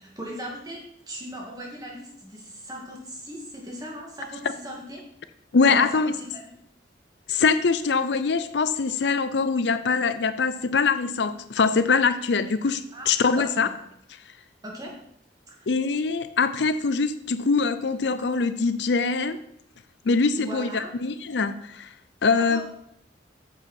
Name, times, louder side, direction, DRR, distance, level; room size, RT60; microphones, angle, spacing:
voice 1, 0.0-5.1 5.7-6.6 12.9-13.1 13.4-13.7 14.6-15.1 15.5-15.7 20.4-20.9 22.4-22.6, equal, 20° right, -2 dB, 2.3 m, -38 dB
voice 2, 5.5-6.1 7.3-13.7 15.7-19.4 20.1-21.9 22.2-22.6, left 4 dB, 70° left, 12 dB, 0.5 m, -23 dB
8.9 x 7.1 x 4.4 m, 0.75 s
head